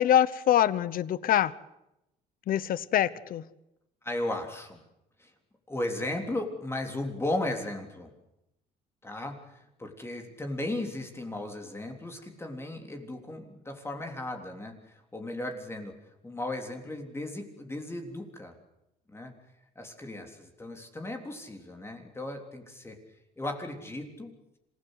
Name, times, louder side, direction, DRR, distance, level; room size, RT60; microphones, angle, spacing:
voice 1, 0.0-1.5 2.5-3.4, left 11 dB, 60° left, 18 dB, 1.0 m, -24 dB
voice 2, 4.0-4.8 5.2-5.3 5.7-8.1 9.0-18.6 19.1-19.3 19.8-23.0 23.4-24.3, left 1 dB, 15° left, 3 dB, 3.5 m, -36 dB
26.5 x 17.0 x 8.2 m, 0.88 s
cardioid pair, 110°, 17 cm